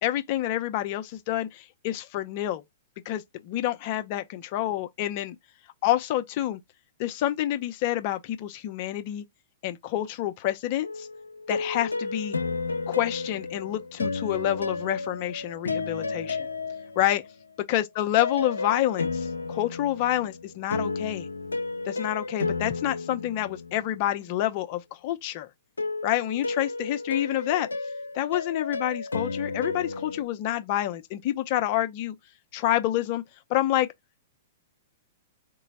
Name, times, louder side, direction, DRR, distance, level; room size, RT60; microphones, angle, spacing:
voice 1, 0.0-2.6 3.1-5.3 5.8-6.6 7.0-9.2 9.6-11.1 11.5-12.4 12.9-16.5 17.0-17.2 17.7-21.3 21.8-25.5 26.0-27.7 28.1-32.1 32.5-33.2 33.5-33.9, left 13 dB, 45° left, 0.6 m, -28 dB
sound 1, 10.8-17.4 18.2-24.1 25.8-30.2, left 3 dB, 85° left, 0.5 m, -32 dB
3.8 x 2.0 x 4.0 m
figure-of-eight pair, 110°, 0 cm